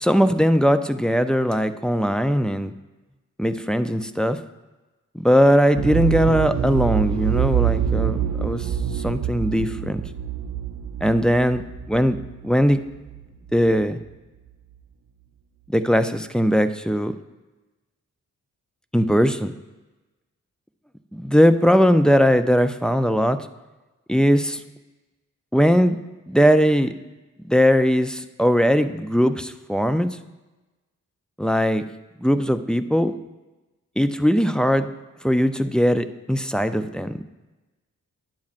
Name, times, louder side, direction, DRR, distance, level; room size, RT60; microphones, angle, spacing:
voice 1, 0.0-2.7 3.4-4.4 5.1-8.7 8.9-10.0 11.0-11.6 11.9-12.2 12.4-12.8 13.5-14.0 15.7-17.1 18.9-19.5 21.1-23.4 24.1-24.6 25.5-26.0 26.3-26.9 27.5-30.2 31.4-31.8 32.2-33.1 34.0-34.9 35.2-37.2, equal, ahead, 8 dB, 0.3 m, -19 dB
sound 1, 5.8-13.5 13.8-13.9, right 10 dB, 60° right, 0.5 m, -26 dB
10.5 x 8.4 x 2.5 m, 1.1 s
cardioid pair, 70°, 34 cm